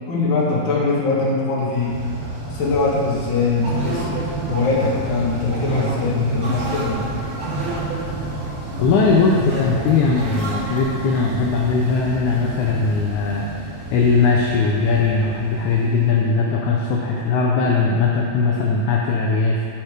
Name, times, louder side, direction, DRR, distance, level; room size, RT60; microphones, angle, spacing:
voice 1, 0.1-2.0 2.5-4.2 4.5-7.1, left 3 dB, 45° left, -5 dB, 1.9 m, -21 dB
sound 1, 1.7-16.7, right 2 dB, 90° right, 3.5 m, -32 dB
sound 2, 3.6-11.1, right 1 dB, 50° right, 1.8 m, -29 dB
voice 2, 8.8-13.5 13.9-19.6, left 4 dB, 75° left, -2 dB, 1.9 m, -19 dB
12.0 x 4.3 x 4.9 m, 2.2 s
omnidirectional pair, 3.8 m